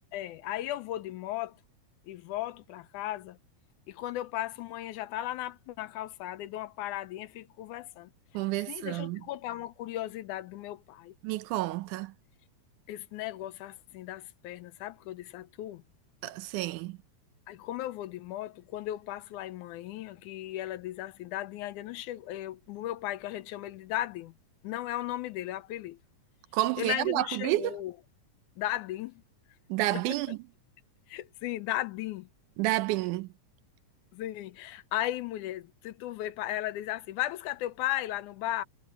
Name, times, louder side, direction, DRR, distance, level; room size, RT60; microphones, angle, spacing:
voice 1, 0.1-1.6 2.1-3.4 3.9-8.1 8.7-11.1 12.9-15.8 17.5-24.3 24.6-26.0 26.8-27.9 28.6-29.2 29.9-30.4 31.1-32.3 34.1-38.6, left 14 dB, 80° left, 2.1 m, -36 dB
voice 2, 8.3-9.2 11.2-12.1 16.2-17.0 26.5-27.8 29.7-30.4 32.6-33.3, right 17 dB, 80° right, 2.0 m, -30 dB
omnidirectional pair, 3.7 m